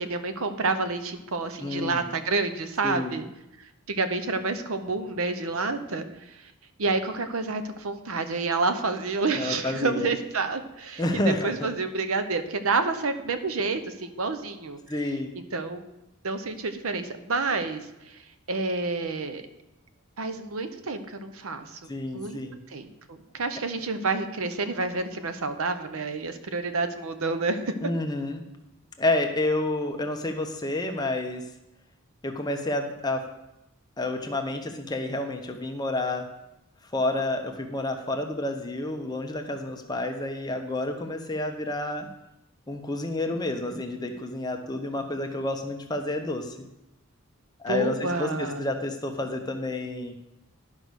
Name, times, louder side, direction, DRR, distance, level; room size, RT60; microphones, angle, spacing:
voice 1, 0.0-3.2 3.9-6.5 6.8-11.0 11.4-14.8 15.5-15.8 16.2-18.2 18.5-19.4 20.2-22.4 22.7-27.7 47.7-48.6, right 3 dB, 75° right, 9 dB, 0.8 m, -29 dB
voice 2, 1.6-2.0 2.8-3.2 9.4-10.1 11.0-11.7 14.9-15.3 21.9-22.6 27.8-28.4 29.0-31.4 32.2-33.2 34.0-36.3 36.9-42.1 42.7-46.6 47.6-50.2, left 2 dB, 20° left, 4 dB, 0.8 m, -29 dB
11.0 x 5.3 x 6.3 m, 0.90 s
head